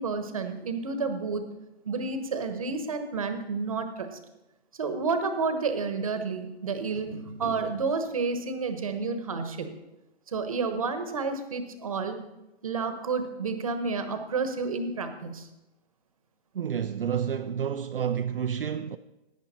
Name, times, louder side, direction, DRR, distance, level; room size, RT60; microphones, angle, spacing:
voice 1, 0.0-1.5 1.8-4.2 4.7-9.7 10.3-12.2 12.6-15.5, right 4 dB, 35° right, 1.1 m, -30 dB
voice 2, 16.5-19.0, right 8 dB, 60° right, 0.5 m, -29 dB
17.5 x 9.2 x 4.2 m
hypercardioid pair, 175°, 32 cm